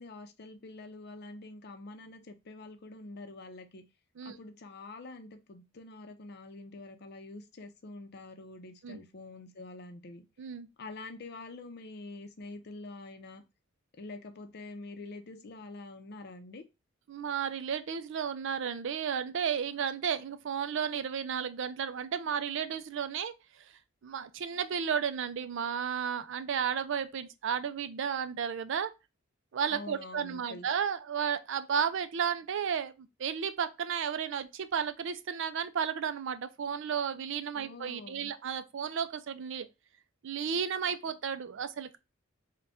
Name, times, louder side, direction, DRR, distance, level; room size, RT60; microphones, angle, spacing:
voice 1, 0.0-3.8 4.2-10.2 10.8-13.4 13.9-16.6 29.7-30.7 37.5-38.3, left 2 dB, 50° left, 0.6 m, -46 dB
voice 2, 17.1-23.3 23.6-23.7 24.0-28.9 29.5-39.7 40.2-42.0, right 7 dB, 60° right, 0.4 m, -33 dB
3.8 x 2.2 x 3.4 m
head